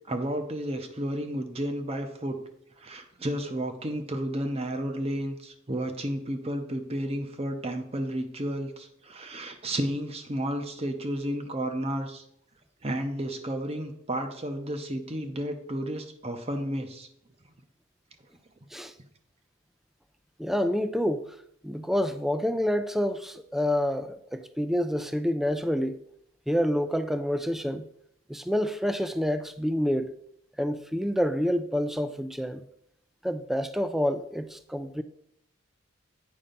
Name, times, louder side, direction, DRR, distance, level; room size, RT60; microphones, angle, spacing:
voice 1, 0.1-2.4 2.8-12.2 12.8-17.1, right 1 dB, 30° right, 0.8 m, -32 dB
voice 2, 20.4-21.3 21.6-26.0 26.5-27.9 28.3-30.1 30.6-32.6 33.2-35.0, equal, ahead, 0.3 m, -28 dB
8.4 x 5.4 x 3.9 m
head